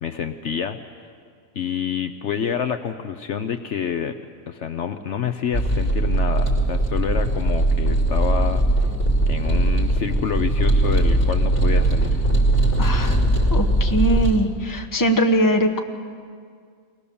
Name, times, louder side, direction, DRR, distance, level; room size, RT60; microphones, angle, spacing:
voice 1, 0.0-1.1 1.5-4.2 4.5-8.9 9.3-12.3, left 7 dB, 60° left, 9 dB, 1.0 m, -28 dB
sound 1, 5.5-14.4, right 1 dB, 40° left, 3.3 m, -20 dB
voice 2, 12.8-13.2 13.5-15.8, right 1 dB, 15° left, 4 dB, 1.1 m, -21 dB
23.0 x 18.5 x 7.0 m, 2.1 s
omnidirectional pair, 1.4 m